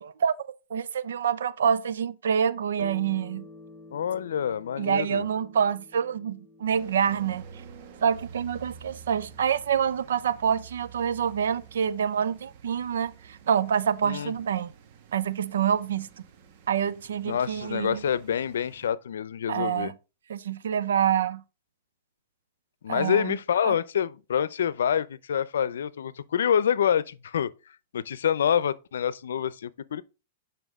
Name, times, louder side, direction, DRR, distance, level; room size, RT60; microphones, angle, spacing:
voice 1, 0.0-0.3 0.7-3.5 4.8-7.4 8.0-14.7 15.1-16.1 16.7-18.0 19.5-19.9 20.3-21.4 22.9-23.4 23.6-23.8, right 8 dB, 90° right, 0.7 m, -26 dB
sound 1, 2.8-11.6, left 2 dB, 10° right, 2.1 m, -52 dB
voice 2, 3.9-5.2 14.0-14.3 17.2-19.9 22.8-27.5 27.9-30.0, left 8 dB, 90° left, 0.6 m, -27 dB
sound 2, 6.7-18.9, right 6 dB, 45° right, 1.5 m, -49 dB
9.1 x 5.8 x 3.6 m
hypercardioid pair, 150°, 0 cm